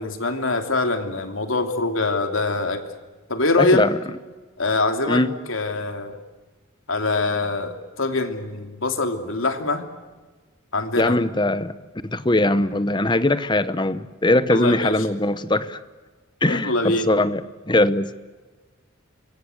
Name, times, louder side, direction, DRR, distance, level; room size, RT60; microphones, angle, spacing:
voice 1, 0.0-2.8 3.3-3.9 4.6-5.2 5.5-6.2 6.9-9.8 10.7-11.2 14.5-15.1 16.4-17.1, left 2 dB, 70° left, 6 dB, 3.0 m, -24 dB
voice 2, 3.6-4.0 5.1-5.3 11.0-11.7 12.0-15.8 16.4-18.1, left 1 dB, 20° left, 14 dB, 0.9 m, -21 dB
28.0 x 23.5 x 8.1 m, 1.3 s
head